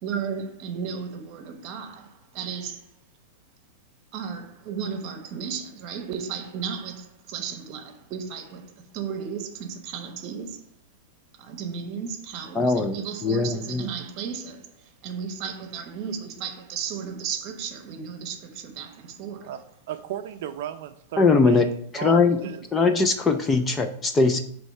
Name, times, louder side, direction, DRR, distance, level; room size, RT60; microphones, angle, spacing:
voice 1, 0.0-2.8 4.1-10.6 11.4-14.7 15.0-19.5, right 7 dB, 35° right, 0.9 m, -34 dB
voice 2, 12.5-13.9 21.2-21.7 21.9-22.4 22.7-24.4, left 4 dB, 10° left, 0.4 m, -21 dB
voice 3, 19.4-21.7 22.0-23.0, right 11 dB, 55° right, 0.5 m, -35 dB
7.9 x 3.2 x 5.4 m
supercardioid pair, 170°, 0 cm